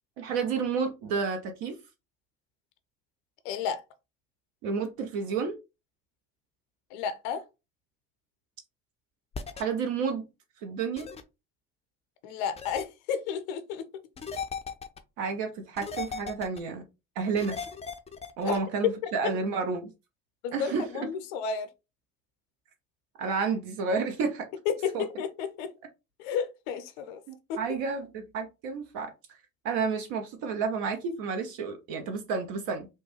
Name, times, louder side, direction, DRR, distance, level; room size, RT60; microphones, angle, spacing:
voice 1, 0.2-1.8 4.6-5.6 9.6-10.2 10.6-11.1 15.2-16.8 17.2-17.6 18.4-19.9 20.5-21.1 23.2-24.5 24.9-25.0 27.3-29.1 29.6-32.9, right 5 dB, 65° right, 0.6 m, -30 dB
voice 2, 3.4-3.8 6.9-7.4 12.2-13.8 18.4-18.6 19.0-19.1 20.4-21.7 24.7-25.7 26.2-27.2 27.5-27.6, left 7 dB, 70° left, 0.5 m, -32 dB
sound 1, 9.3-9.6 11.0-11.2 12.6-12.8 14.2-15.0 15.8-16.6 17.4-18.6, left 5 dB, 15° left, 0.4 m, -37 dB
3.0 x 2.2 x 2.9 m
figure-of-eight pair, 40°, 41 cm